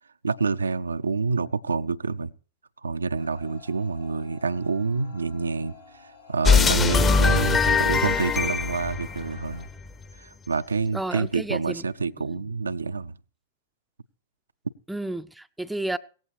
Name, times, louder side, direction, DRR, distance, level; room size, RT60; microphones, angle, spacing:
voice 1, 0.2-2.3 2.8-5.8 6.0-9.7 10.2-13.1, right 4 dB, 80° right, 0.5 m, -27 dB
sound 1, 3.2-9.7, left 5 dB, 85° left, 3.8 m, -49 dB
sound 2, 6.4-9.9, left 5 dB, 20° left, 0.8 m, -21 dB
voice 2, 10.9-11.8 14.9-16.0, right 1 dB, 5° right, 0.5 m, -31 dB
17.5 x 15.0 x 3.2 m
figure-of-eight pair, 100°, 0 cm